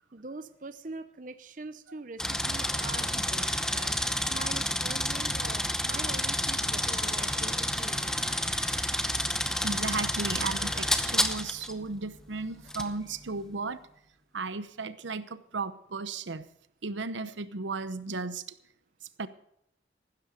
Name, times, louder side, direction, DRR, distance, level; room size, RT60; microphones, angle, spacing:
voice 1, 0.1-4.0 4.3-8.2, right 3 dB, 45° right, 0.7 m, -43 dB
Bark, 2.2-3.3 6.8-7.8 9.4-11.0 12.6-12.7 14.6-14.7 15.8-15.9, left 2 dB, 30° left, 7.2 m, -51 dB
sound 1, 2.2-11.7 12.7-12.9, left 1 dB, 5° left, 0.8 m, -29 dB
voice 2, 9.6-13.9 14.3-16.5 16.8-18.4 19.2-19.3, right 3 dB, 85° right, 0.9 m, -35 dB
15.5 x 12.5 x 5.1 m
head